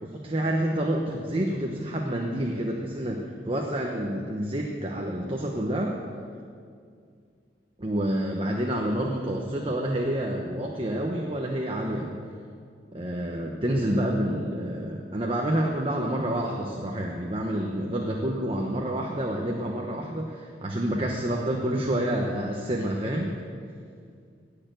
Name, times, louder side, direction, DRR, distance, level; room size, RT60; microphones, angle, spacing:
voice 1, 0.0-6.0 7.8-12.2 12.9-20.3 20.6-23.3, right 1 dB, 30° right, 0 dB, 1.1 m, -28 dB
18.0 x 6.9 x 9.1 m, 2.3 s
head